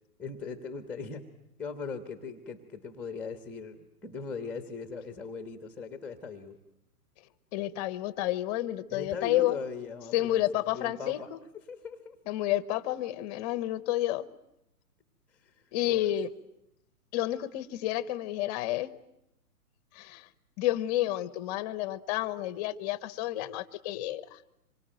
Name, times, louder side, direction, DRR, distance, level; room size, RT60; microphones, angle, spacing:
voice 1, 0.2-1.3 1.6-6.6 8.9-12.2 15.3-15.5 15.8-16.1, left 5 dB, 5° left, 8 dB, 1.3 m, -40 dB
voice 2, 7.5-9.6 10.1-11.4 12.3-14.2 15.7-16.3 17.1-18.9 19.9-20.3 20.6-24.4, left 14 dB, 25° left, 15 dB, 1.1 m, -30 dB
26.5 x 24.0 x 9.2 m, 0.85 s
hypercardioid pair, 145°, 45 cm